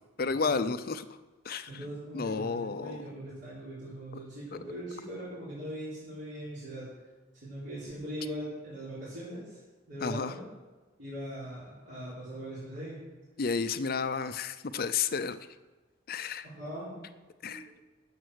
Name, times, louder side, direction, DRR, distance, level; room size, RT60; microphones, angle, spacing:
voice 1, 0.2-1.0 1.5-1.7 2.1-3.0 10.0-10.3 13.4-15.4 16.1-16.5 17.4-17.6, left 5 dB, 45° left, 12 dB, 0.5 m, -31 dB
voice 2, 1.7-6.9 7.4-9.6 9.9-10.4 11.0-13.0 16.6-17.0 17.4-17.6, right 1 dB, 55° right, -11 dB, 4.2 m, -40 dB
11.0 x 7.4 x 6.4 m, 1.2 s
head